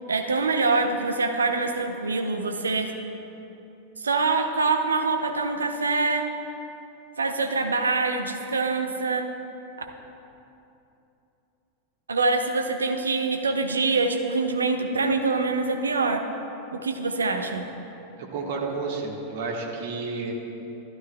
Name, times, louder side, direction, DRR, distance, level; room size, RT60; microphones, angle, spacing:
voice 1, 0.1-2.9 4.0-6.3 7.2-9.3 12.1-16.2 16.7-17.6, right 3 dB, 75° right, 5 dB, 0.7 m, -25 dB
voice 2, 18.2-20.3, right 4 dB, 55° right, 0 dB, 1.4 m, -31 dB
12.5 x 12.0 x 2.2 m, 2.9 s
figure-of-eight pair, 90°, 0 cm